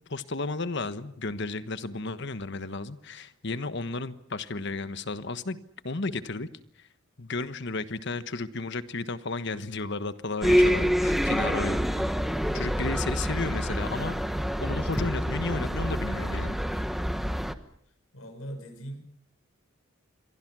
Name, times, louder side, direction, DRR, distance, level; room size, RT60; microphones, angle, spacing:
voice 1, 0.1-5.6 5.8-6.5 6.8-6.9 7.2-12.0 12.5-14.2 14.6-16.8, left 3 dB, 55° left, 12 dB, 1.3 m, -33 dB
sound 1, 10.4-17.5, equal, ahead, 1.2 m, -27 dB
voice 2, 18.1-19.0, right 1 dB, 85° left, 8 dB, 5.8 m, -40 dB
28.0 x 23.5 x 6.3 m, 0.66 s
head